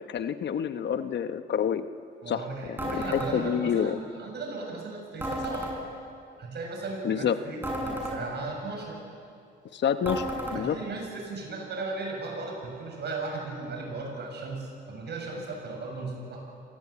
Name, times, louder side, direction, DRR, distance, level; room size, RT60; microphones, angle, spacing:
voice 1, 0.0-1.8 2.3-4.0 7.0-7.3 9.7-10.3 10.5-10.8, left 8 dB, 60° left, 10 dB, 1.1 m, -28 dB
voice 2, 2.2-5.7 6.4-9.0 10.5-16.4, right 3 dB, 55° right, 1 dB, 7.5 m, -36 dB
sound 1, 2.8-3.3 5.2-5.7 7.6-8.2 10.0-10.6, equal, 10° right, 7.1 m, -32 dB
26.5 x 18.5 x 8.6 m, 2.4 s
cardioid pair, 90°, 20 cm